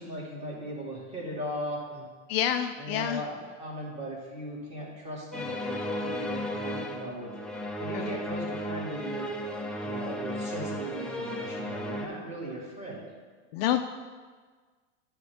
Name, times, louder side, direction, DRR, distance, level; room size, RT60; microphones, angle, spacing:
voice 1, 0.0-2.1 2.8-7.3 7.8-9.3 9.8-13.1, right 1 dB, 15° right, -5 dB, 2.6 m, -38 dB
voice 2, 2.3-3.2 7.9-8.1 13.5-13.8, left 10 dB, 55° left, 7 dB, 0.5 m, -28 dB
sound 1, 5.3-12.1, left 1 dB, ahead, 0.6 m, -34 dB
9.8 x 3.6 x 6.4 m, 1.5 s
hypercardioid pair, 110°, 38 cm